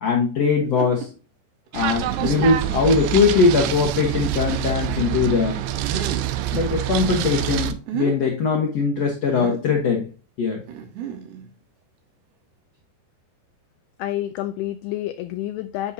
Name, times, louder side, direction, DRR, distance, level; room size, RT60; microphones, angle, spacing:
voice 1, 0.0-1.1 1.7-5.6 6.5-10.1 10.4-10.6, left 4 dB, 60° left, 0 dB, 1.7 m, -21 dB
sound 1, 0.6-1.1 1.7-1.8 2.2-2.8 3.4-3.5 5.8-6.4 7.7-8.2 9.3-9.7 10.7-11.5, right 7 dB, 75° right, 3.2 m, -31 dB
sound 2, 1.7-7.7, right 13 dB, 90° right, 2.9 m, -26 dB
voice 2, 14.0-15.9, left 14 dB, 80° left, 10 dB, 2.3 m, -29 dB
10.5 x 5.6 x 2.8 m, 0.34 s
omnidirectional pair, 4.9 m